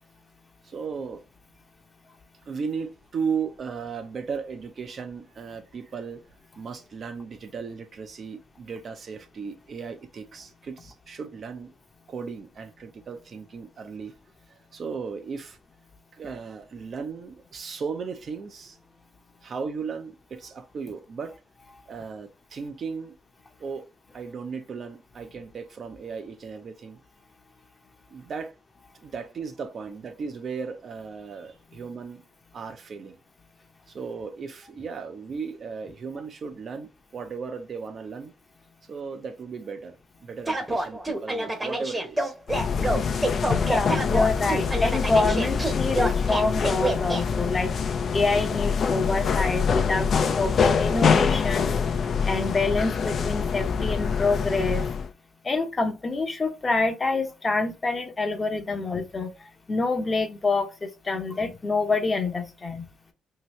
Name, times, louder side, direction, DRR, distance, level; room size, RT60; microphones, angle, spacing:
voice 1, 0.6-1.2 2.4-6.2 6.6-11.7 12.1-14.1 14.5-15.6 16.1-18.8 19.4-21.4 21.9-23.1 23.6-23.9 24.1-27.0 28.1-28.5 28.9-32.3 32.5-33.2 33.9-38.3 38.9-42.3, right 5 dB, 50° right, 0.5 m, -36 dB
sound 1, 40.5-47.2, right 1 dB, 15° right, 0.8 m, -27 dB
sound 2, 42.5-55.1, left 6 dB, 55° left, 0.4 m, -25 dB
voice 2, 43.6-47.7 48.1-50.1 50.3-51.7 52.3-54.8 55.4-62.9, left 3 dB, 30° left, 0.7 m, -26 dB
2.8 x 2.7 x 3.0 m
cardioid pair, 90°, 0 cm